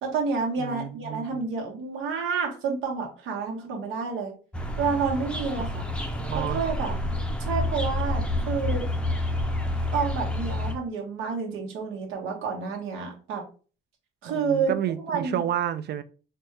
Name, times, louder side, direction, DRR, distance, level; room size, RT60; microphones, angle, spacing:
voice 1, 0.0-4.3 4.8-5.8 6.3-7.0 7.4-8.9 9.9-13.4 14.2-14.7 15.1-15.4, right 5 dB, 90° right, 1.1 m, -29 dB
voice 2, 0.6-1.5 5.6-6.6 14.3-16.0, right 10 dB, 55° right, 0.4 m, -31 dB
sound 1, 4.5-10.7, left 1 dB, 5° left, 0.5 m, -29 dB
4.2 x 2.3 x 3.2 m
cardioid pair, 90°, 20 cm